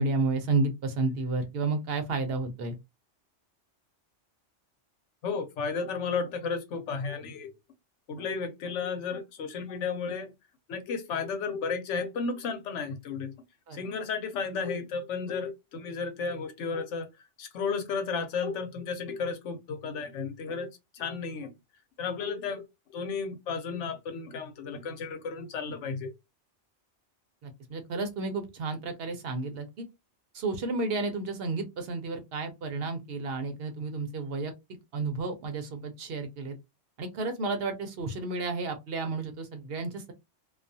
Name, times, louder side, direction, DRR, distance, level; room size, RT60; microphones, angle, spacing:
voice 1, 0.0-2.8 13.7-13.8 27.4-29.8 30.3-34.5 34.9-36.6 37.0-40.1, right 3 dB, 60° right, 0.8 m, -31 dB
voice 2, 5.2-7.5 8.1-10.3 10.7-13.3 13.7-17.1 17.4-21.5 22.0-22.6 22.9-26.1, left 5 dB, 85° left, 1.0 m, -33 dB
2.3 x 2.3 x 2.6 m
omnidirectional pair, 1.2 m